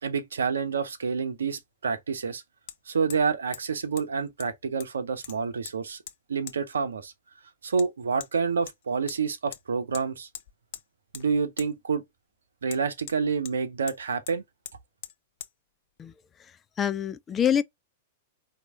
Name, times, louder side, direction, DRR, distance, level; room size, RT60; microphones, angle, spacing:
voice 1, 0.0-2.4 2.9-6.0 6.3-7.1 7.6-10.3 11.1-12.0 12.6-14.4, right 5 dB, 75° right, 0.8 m, -28 dB
Hammer, 2.7-2.8 3.1-3.3 3.5-3.6 4.0-4.1 4.4-4.9 5.2-5.8 6.1-6.2 6.5-6.6 7.8-7.9 8.2-8.3 8.7-9.2 9.5-9.6 9.9-10.1 10.3-10.9 11.1-11.3 11.6-11.7 12.7-13.6 13.9-14.0 14.3-14.4 14.7-14.8 15.0-15.2 15.4-15.5, left 11 dB, 55° left, 0.7 m, -42 dB
voice 2, 16.8-17.6, left 8 dB, 20° left, 0.4 m, -25 dB
4.7 x 2.9 x 3.8 m
figure-of-eight pair, 100°, 0 cm